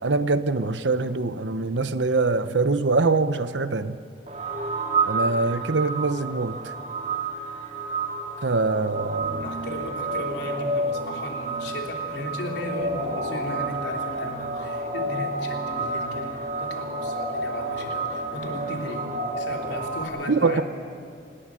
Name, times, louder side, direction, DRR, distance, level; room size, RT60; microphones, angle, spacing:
voice 1, 0.0-4.0 5.1-6.6 8.4-9.5 20.3-20.6, right 3 dB, 85° right, 12 dB, 0.9 m, -23 dB
sound 1, 4.3-20.0, right 2 dB, 40° right, 2.5 m, -30 dB
voice 2, 9.4-20.6, left 1 dB, 75° left, 1 dB, 3.2 m, -35 dB
27.5 x 20.5 x 6.3 m, 2.4 s
head